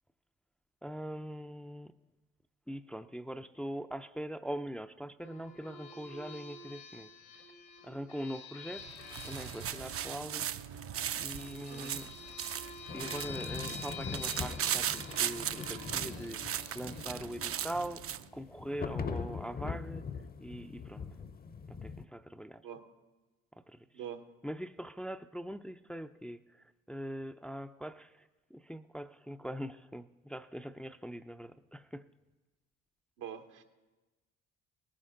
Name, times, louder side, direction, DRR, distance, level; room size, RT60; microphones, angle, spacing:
voice 1, 0.8-1.9 2.7-7.1 7.8-8.9 9.2-10.5 11.2-12.1 12.9-20.0 20.4-21.1 21.7-22.6 23.7-23.9 24.4-32.1, equal, 5° left, 0.4 m, -42 dB
sound 1, 5.2-18.4, left 4 dB, 90° left, 3.2 m, -49 dB
sound 2, 8.8-18.3, right 10 dB, 45° right, 0.6 m, -38 dB
voice 2, 11.7-12.0 22.6-22.9 23.9-24.2 33.2-33.6, right 8 dB, 80° right, 1.3 m, -44 dB
sound 3, 12.9-22.0, left 5 dB, 30° left, 0.7 m, -42 dB
18.5 x 9.8 x 3.8 m
supercardioid pair, 65°, 31 cm